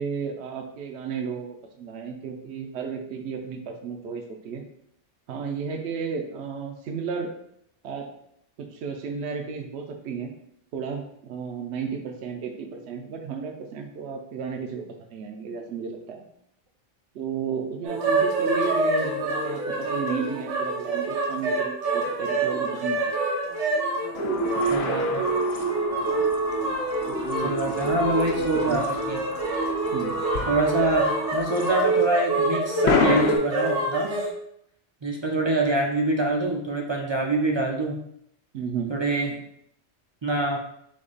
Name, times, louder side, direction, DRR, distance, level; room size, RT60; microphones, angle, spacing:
voice 1, 0.0-4.6 5.3-7.3 7.8-8.1 8.6-10.3 10.7-16.2 17.1-23.0 27.0-28.0 28.4-28.8 29.9-30.2 38.5-39.0, right 6 dB, 70° right, 3 dB, 0.9 m, -33 dB
sound 1, 17.8-34.3, right 2 dB, 90° right, 1.3 m, -26 dB
sound 2, 24.1-26.6 30.3-31.1 31.4-31.5 32.8-33.4, left 6 dB, 70° left, 0.8 m, -28 dB
sound 3, 24.1-32.2, left 2 dB, 55° left, 0.4 m, -36 dB
voice 2, 24.7-25.3 27.4-29.2 30.5-34.1 35.0-38.0 38.9-39.4 40.2-40.6, right 2 dB, 45° right, 0 dB, 0.4 m, -25 dB
3.6 x 3.2 x 3.9 m, 0.72 s
omnidirectional pair, 1.2 m